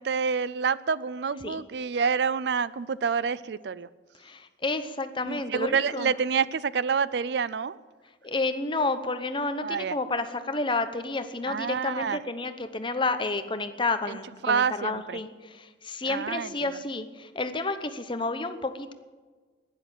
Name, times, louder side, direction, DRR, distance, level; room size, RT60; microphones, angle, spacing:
voice 1, 0.0-3.9 5.2-7.8 9.6-10.0 11.5-12.2 14.1-14.2 14.4-15.2 16.0-16.8, right 6 dB, 70° right, 18 dB, 0.4 m, -28 dB
voice 2, 4.2-6.1 8.2-18.9, left 3 dB, 30° left, 10 dB, 0.9 m, -30 dB
11.5 x 10.5 x 9.1 m, 1.4 s
head